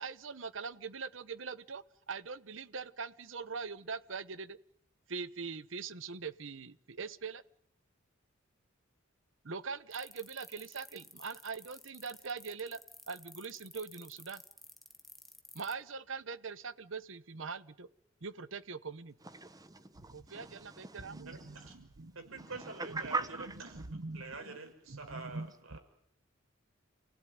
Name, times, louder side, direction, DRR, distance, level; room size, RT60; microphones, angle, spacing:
voice 1, 0.0-4.6 5.1-7.4 9.4-12.8 13.1-14.4 15.5-17.9 18.2-19.1 20.1-22.5 22.9-23.1 23.6-24.6 24.9-25.8, right 4 dB, 65° right, 1.0 m, -42 dB
sound 1, 9.9-15.7, left 1 dB, ahead, 1.4 m, -52 dB
voice 2, 19.4-21.2 21.5-21.6 22.4-23.6, right 3 dB, 20° right, 1.2 m, -40 dB
voice 3, 21.2-21.8 22.2-23.2 23.7-23.8 24.1-25.8, right 3 dB, 85° right, 5.6 m, -46 dB
29.0 x 17.0 x 9.4 m
head